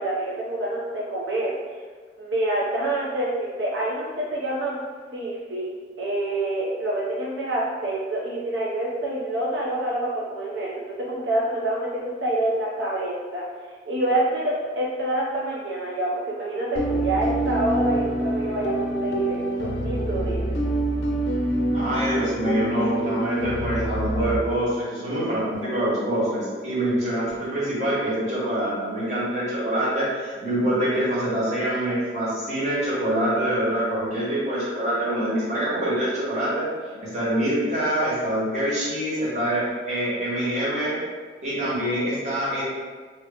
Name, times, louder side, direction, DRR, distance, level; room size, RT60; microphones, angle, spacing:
voice 1, 0.0-1.8 2.2-4.8 5.1-20.6, right 1 dB, 85° right, -4 dB, 0.5 m, -27 dB
sound 1, 16.7-24.4, right 1 dB, 80° left, 0.4 m, -26 dB
voice 2, 21.7-36.7 36.9-40.9 41.4-42.6, right 1 dB, 40° right, -9 dB, 1.3 m, -25 dB
2.8 x 2.8 x 3.4 m, 1.5 s
head